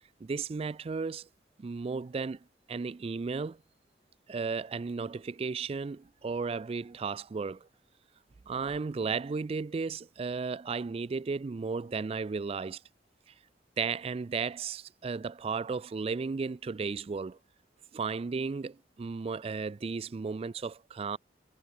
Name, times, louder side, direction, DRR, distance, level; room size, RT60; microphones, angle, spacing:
voice 1, 0.2-1.3 1.6-2.4 2.7-3.6 4.3-7.7 8.5-12.8 13.8-17.4 17.9-21.2, right 4 dB, 35° right, 0.3 m, -34 dB
head